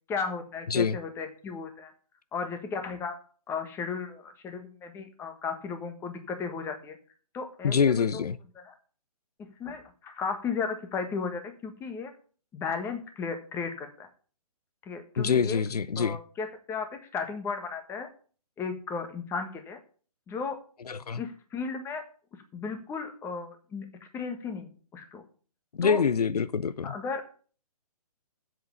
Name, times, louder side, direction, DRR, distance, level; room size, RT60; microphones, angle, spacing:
voice 1, 0.1-1.9 2.3-3.2 3.5-7.0 7.3-8.2 8.5-8.8 9.6-12.1 12.5-14.1 14.8-15.6 16.0-18.1 18.6-19.8 20.3-20.6 21.2-22.0 22.5-23.9 24.1-25.2 25.8-26.0 26.8-27.2, left 5 dB, 10° left, 1.5 m, -35 dB
voice 2, 7.6-8.4 15.2-16.2 20.9-21.2 25.7-26.9, left 6 dB, 75° left, 0.7 m, -25 dB
7.9 x 7.4 x 8.5 m
hypercardioid pair, 140°, 20 cm